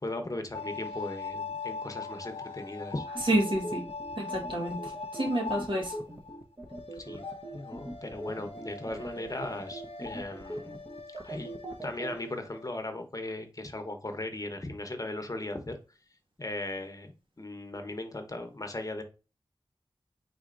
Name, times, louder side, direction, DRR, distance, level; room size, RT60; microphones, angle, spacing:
voice 1, 0.0-3.1 6.9-7.2 7.5-10.8 11.2-11.5 11.8-15.8 16.4-19.0, left 2 dB, 35° left, 6 dB, 0.9 m, -38 dB
sound 1, 0.5-6.4 6.7-12.7, left 4 dB, 80° left, 0.7 m, -41 dB
sound 2, 3.1-12.1, right 1 dB, 20° right, 0.9 m, -41 dB
voice 2, 3.3-3.8 4.2-4.8 5.1-5.9, right 1 dB, 55° right, 1 dB, 1.4 m, -28 dB
4.5 x 4.2 x 2.5 m, 0.32 s
cardioid pair, 45°, 10 cm